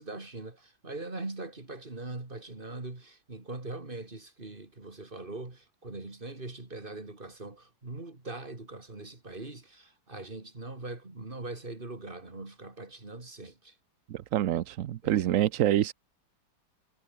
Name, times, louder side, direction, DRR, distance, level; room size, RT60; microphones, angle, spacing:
voice 1, 0.0-13.7 15.0-15.3, right 2 dB, 25° right, 3.4 m, -41 dB
voice 2, 14.1-15.9, right 12 dB, 65° right, 0.8 m, -26 dB
omnidirectional pair, 2.1 m